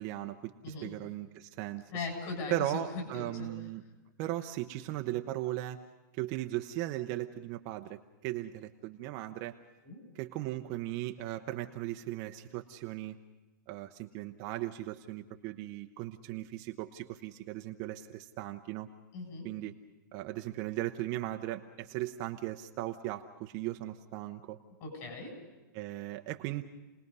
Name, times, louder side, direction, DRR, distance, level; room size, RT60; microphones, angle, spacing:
voice 1, 0.0-1.8 2.5-3.8 4.2-5.8 6.2-9.6 10.1-13.2 13.7-18.9 19.4-19.7 20.1-24.6 25.7-26.6, right 15 dB, 30° right, 5 dB, 0.8 m, -37 dB
voice 2, 1.9-2.8 3.1-3.5 9.8-10.0 19.1-19.5 24.8-25.3, left 3 dB, 35° left, 2 dB, 6.8 m, -39 dB
30.0 x 19.5 x 5.5 m, 1.1 s
hypercardioid pair, 155°, 11 cm